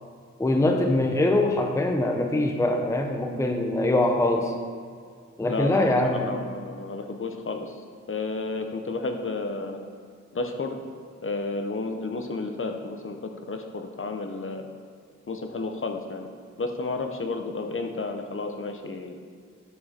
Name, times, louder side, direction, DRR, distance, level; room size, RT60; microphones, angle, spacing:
voice 1, 0.4-4.5 5.4-6.4, left 1 dB, 10° left, 3 dB, 0.6 m, -23 dB
voice 2, 5.5-5.9 6.3-7.8 8.1-9.8 10.3-10.8 11.2-14.7 15.3-16.3 16.6-19.2, left 3 dB, 45° left, 5 dB, 0.8 m, -31 dB
10.5 x 4.9 x 4.3 m, 2.2 s
wide cardioid pair, 100°, 29 cm